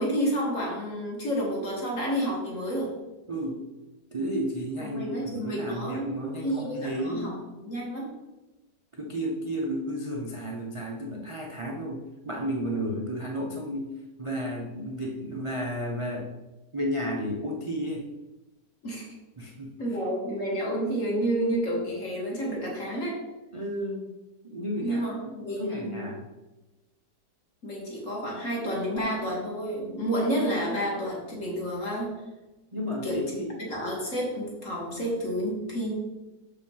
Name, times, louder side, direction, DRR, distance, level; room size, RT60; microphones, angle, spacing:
voice 1, 0.0-2.9 4.8-6.1 6.4-7.3 7.6-8.1 18.8-19.2 19.8-23.2 24.8-26.1 27.6-32.1 33.0-33.2 33.6-35.9, equal, 50° left, -3 dB, 2.3 m, -30 dB
voice 2, 3.3-3.7 4.1-7.4 8.9-16.3 16.7-18.1 19.4-19.8 23.5-24.1 24.4-26.3 32.7-33.7, equal, 35° right, -1 dB, 0.5 m, -32 dB
6.7 x 5.0 x 5.5 m, 1.1 s
omnidirectional pair, 1.8 m